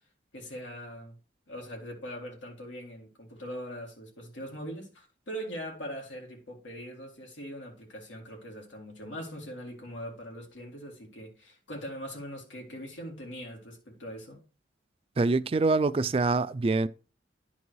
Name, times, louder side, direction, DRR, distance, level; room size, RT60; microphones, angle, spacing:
voice 1, 0.3-1.2 1.5-14.4, equal, 90° left, 2.3 m, -41 dB
voice 2, 15.2-16.9, right 3 dB, 30° right, 0.3 m, -25 dB
10.5 x 4.1 x 4.6 m
head